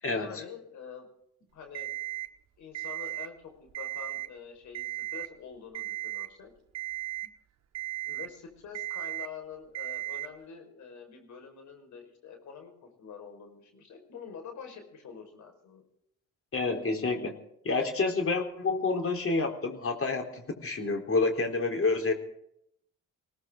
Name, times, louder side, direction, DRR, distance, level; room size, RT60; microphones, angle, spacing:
voice 1, 0.0-1.1 1.5-1.9 2.6-6.5 8.0-15.8, left 6 dB, 75° left, 4 dB, 5.3 m, -46 dB
Alarm, 1.7-2.3 2.7-3.3 3.7-4.3 4.7-5.3 5.7-6.3 6.7-7.3 7.7-8.3 8.7-9.3 9.7-10.3, right 14 dB, 60° right, 1.2 m, -36 dB
voice 2, 16.5-17.3 17.6-22.1, left 3 dB, 50° left, 4 dB, 4.0 m, -28 dB
20.0 x 18.0 x 3.9 m, 0.74 s
supercardioid pair, 60°, 29 cm